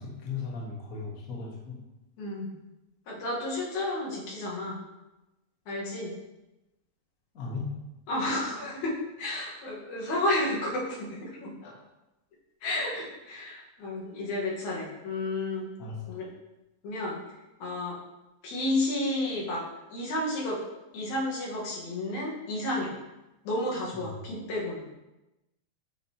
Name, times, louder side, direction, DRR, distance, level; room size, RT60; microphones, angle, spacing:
voice 1, 0.0-1.8 7.3-7.7 11.6-11.7 15.8-16.2 24.0-24.1, left 4 dB, 45° left, -3 dB, 1.2 m, -37 dB
voice 2, 2.2-2.5 3.1-4.8 5.7-6.1 8.1-8.9 9.2-11.5 12.6-15.7 16.1-16.3 16.8-17.2 17.6-18.0 18.4-19.6 19.9-20.6 20.9-23.0 23.4-24.9, left 1 dB, 80° left, -4 dB, 2.8 m, -31 dB
8.4 x 5.3 x 2.9 m, 0.98 s
omnidirectional pair, 3.3 m